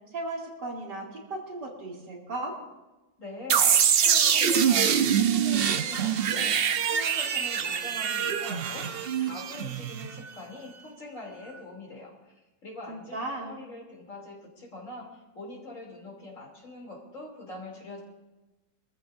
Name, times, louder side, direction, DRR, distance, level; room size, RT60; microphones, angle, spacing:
voice 1, 0.1-2.5 12.9-13.5, right 2 dB, 85° right, -2 dB, 3.3 m, -36 dB
voice 2, 3.2-3.6 4.0-12.3 12.6-18.0, left 2 dB, 50° left, -1 dB, 3.4 m, -43 dB
sound 1, 3.5-10.3, right 8 dB, 65° right, 0.6 m, -24 dB
24.5 x 14.0 x 2.6 m, 1.1 s
omnidirectional pair, 1.8 m